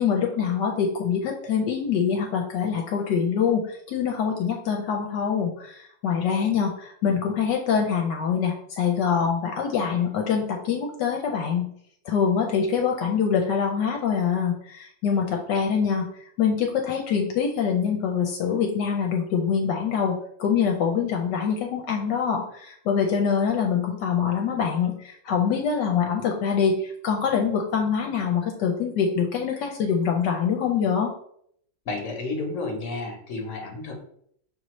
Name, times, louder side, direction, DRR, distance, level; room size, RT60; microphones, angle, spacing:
voice 1, 0.0-11.7 12.0-16.1 16.4-31.1, left 6 dB, 75° left, 1 dB, 1.2 m, -24 dB
voice 2, 31.8-33.9, left 3 dB, 50° left, 2 dB, 1.2 m, -31 dB
5.8 x 2.7 x 3.0 m, 0.66 s
omnidirectional pair, 1.9 m